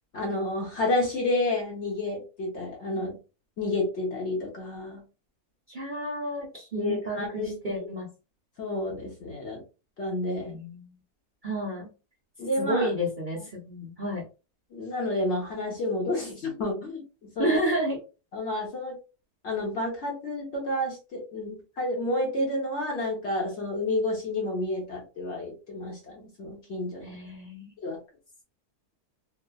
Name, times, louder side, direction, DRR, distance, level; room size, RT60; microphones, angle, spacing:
voice 1, 0.1-3.2 3.6-5.0 6.7-7.8 8.6-9.6 10.0-10.6 12.4-12.9 13.3-13.4 14.7-17.6 18.3-19.0 19.4-27.2 27.8-28.0, left 1 dB, 55° left, -1 dB, 0.9 m, -30 dB
voice 2, 5.7-8.1 10.4-10.9 11.4-11.9 12.6-14.2 17.4-18.0 27.0-27.7, right 1 dB, 50° right, -5 dB, 0.6 m, -31 dB
3.2 x 2.1 x 2.2 m, 0.32 s
omnidirectional pair, 1.7 m